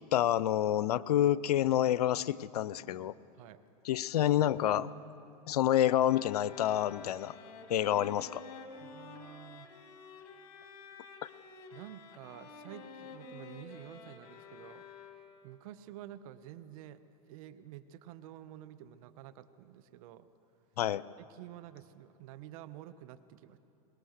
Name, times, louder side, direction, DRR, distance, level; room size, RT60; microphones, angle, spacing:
voice 1, 0.1-3.1 3.8-4.9 5.5-7.3 7.7-8.4 11.2-11.3 20.8-21.0, left 11 dB, 90° left, 19 dB, 0.6 m, -28 dB
sound 1, 6.1-15.5, left 5 dB, 60° left, 2.6 m, -50 dB
voice 2, 8.8-9.7 11.7-14.9 15.4-17.0 17.3-20.3 21.2-23.6, right 12 dB, 65° right, 13 dB, 1.1 m, -50 dB
23.5 x 21.0 x 6.6 m, 2.8 s
hypercardioid pair, 110°, 19 cm